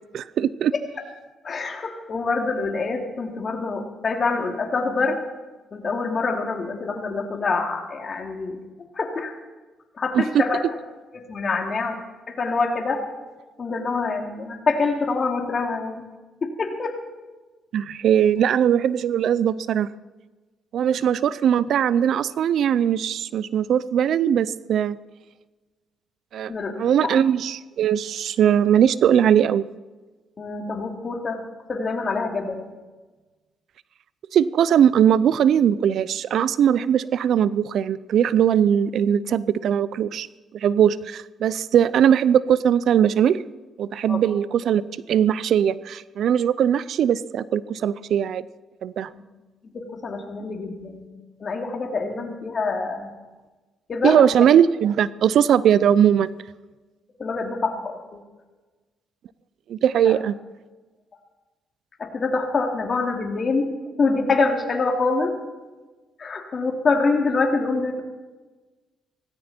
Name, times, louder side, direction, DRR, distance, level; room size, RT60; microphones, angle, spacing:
voice 1, 0.1-0.7 10.1-10.2 17.7-19.9 20.7-25.0 26.3-26.5 26.8-29.6 34.3-40.3 40.5-43.4 43.8-44.8 45.1-48.4 48.8-49.1 54.0-56.3 59.7-60.3, right 9 dB, 70° right, 18 dB, 0.5 m, -20 dB
voice 2, 1.4-5.2 5.7-8.6 8.9-9.4 10.0-10.6 11.1-12.0 12.3-13.0 13.6-16.0 16.4-17.0 26.5-26.7 27.0-27.1 30.4-31.4 31.7-32.7 44.1-44.2 49.1-49.2 49.6-51.0 51.4-53.1 53.9-54.2 57.2-58.0 60.0-60.2 62.0-65.4 66.2-68.0, left 3 dB, 40° left, 2 dB, 2.9 m, -25 dB
18.0 x 16.0 x 4.4 m, 1.3 s
cardioid pair, 90°, 0 cm